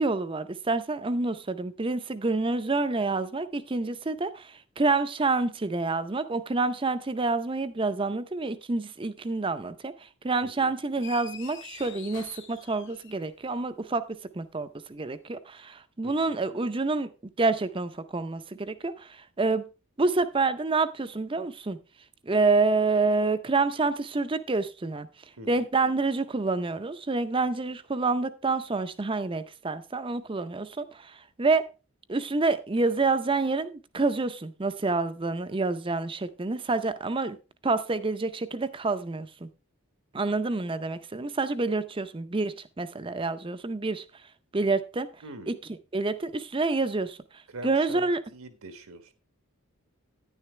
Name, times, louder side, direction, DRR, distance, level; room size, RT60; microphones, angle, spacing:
voice 1, 0.0-17.1 17.4-19.7 20.0-21.8 22.2-25.1 25.5-31.7 32.1-37.4 37.6-39.5 40.1-44.0 44.5-45.1 45.5-45.6 45.9-47.2 47.6-48.2, right 3 dB, 25° right, 12 dB, 0.5 m, -28 dB
voice 2, 10.4-10.7 16.0-16.4 25.4-25.7 45.2-45.5 47.5-49.1, right 2 dB, 80° right, 9 dB, 1.3 m, -43 dB
sound 1, 11.0-13.5, left 8 dB, 55° left, 1.0 m, -45 dB
10.0 x 9.9 x 3.2 m, 0.30 s
head